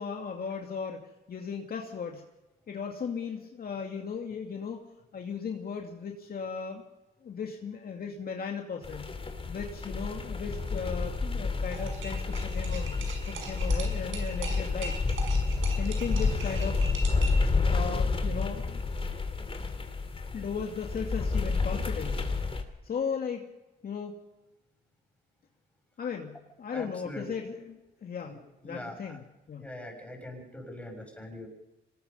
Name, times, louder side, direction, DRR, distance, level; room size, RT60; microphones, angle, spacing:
voice 1, 0.0-2.2 2.7-4.8 5.1-6.8 7.2-9.1 9.5-15.0 15.8-16.8 17.7-18.8 20.3-22.3 22.8-23.5 23.8-24.1 26.0-28.4 28.6-29.7, left 6 dB, 50° left, 2 dB, 2.4 m, -36 dB
sound 1, 8.8-22.6, left 4 dB, 30° left, 3.0 m, -30 dB
sound 2, 11.7-17.5, right 4 dB, 85° right, 5.7 m, -41 dB
voice 2, 26.7-27.3 28.2-28.4 28.6-29.2 29.6-31.5, left 1 dB, 5° left, 2 dB, 7.3 m, -42 dB
25.0 x 20.0 x 5.5 m, 1.0 s
cardioid pair, 90°, 20 cm